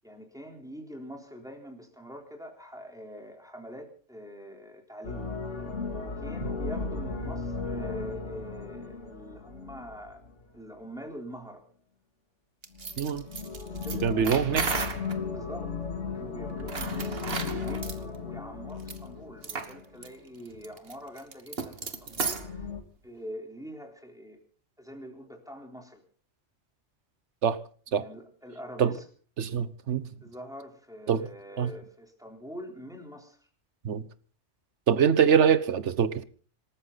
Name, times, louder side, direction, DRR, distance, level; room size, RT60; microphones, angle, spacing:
voice 1, 0.0-5.3 5.9-10.2 10.5-11.6 13.7-14.4 15.3-15.7 16.1-22.7 23.0-24.4 24.8-26.0 27.9-29.0 30.2-33.4, equal, 5° right, 3.8 m, -44 dB
sound 1, 5.0-10.4 12.7-20.1 22.1-22.8, left 4 dB, 80° left, 2.4 m, -36 dB
sound 2, 12.6-15.2 16.6-18.0 18.8-19.0 19.4-19.7 20.0-20.1 20.5-22.5, right 5 dB, 55° right, 1.7 m, -34 dB
voice 2, 14.0-14.6 27.4-27.6 27.9-28.1 28.8-28.9 29.4-30.1 31.1-31.2 31.6-31.7 33.8-34.1 34.9-36.2, right 7 dB, 70° right, 1.3 m, -24 dB
26.5 x 13.5 x 4.1 m
omnidirectional pair, 1.2 m